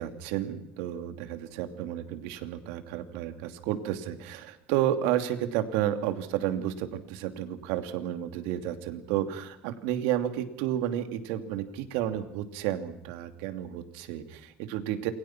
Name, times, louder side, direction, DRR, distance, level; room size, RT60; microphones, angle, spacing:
voice 1, 0.0-15.1, right 11 dB, 80° right, 8 dB, 2.8 m, -31 dB
28.5 x 22.5 x 6.0 m, 0.76 s
cardioid pair, 165°, 4 cm